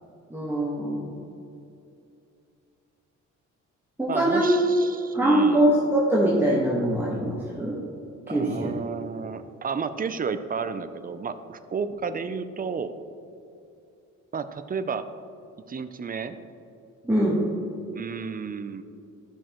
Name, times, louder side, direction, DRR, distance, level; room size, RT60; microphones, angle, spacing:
voice 1, 0.3-1.1 4.0-4.6 5.1-7.8 8.3-8.7 17.0-17.4, right 1 dB, 5° right, -6 dB, 1.4 m, -23 dB
voice 2, 4.1-5.6 8.3-12.9 14.3-15.1 15.7-16.4 17.9-18.8, right 5 dB, 30° right, 11 dB, 0.6 m, -32 dB
13.5 x 6.2 x 3.1 m, 2.6 s
cardioid pair, 90°, 30 cm